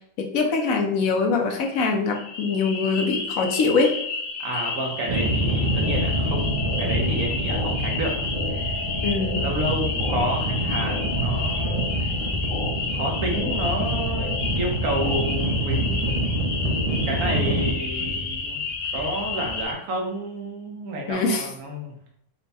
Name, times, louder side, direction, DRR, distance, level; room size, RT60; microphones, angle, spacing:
voice 1, 0.2-4.0 9.0-9.5 21.1-21.5, left 4 dB, 70° left, 3 dB, 1.1 m, -23 dB
sound 1, 2.1-19.7, left 4 dB, 85° left, 1.4 m, -31 dB
voice 2, 4.4-8.9 9.4-12.1 12.9-16.4 17.1-18.6 18.9-21.9, right 1 dB, 75° right, 1 dB, 1.4 m, -30 dB
sound 2, 5.1-19.6, right 1 dB, 40° right, 0.5 m, -27 dB
sound 3, 5.4-15.2, left 2 dB, 50° left, 0.8 m, -34 dB
4.5 x 2.2 x 4.0 m, 0.70 s
omnidirectional pair, 1.6 m